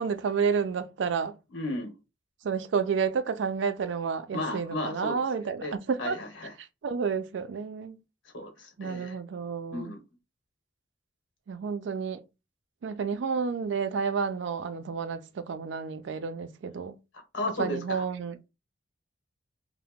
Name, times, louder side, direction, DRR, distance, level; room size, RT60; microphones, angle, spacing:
voice 1, 0.0-1.4 2.4-6.2 6.6-8.0 8.8-9.9 11.5-12.2 12.8-17.0 17.6-18.4, right 5 dB, 70° right, 0.4 m, -30 dB
voice 2, 1.5-1.9 4.3-6.5 8.3-9.2 9.7-10.0 17.1-18.0, left 1 dB, 80° left, 1.0 m, -35 dB
2.8 x 2.1 x 3.4 m
head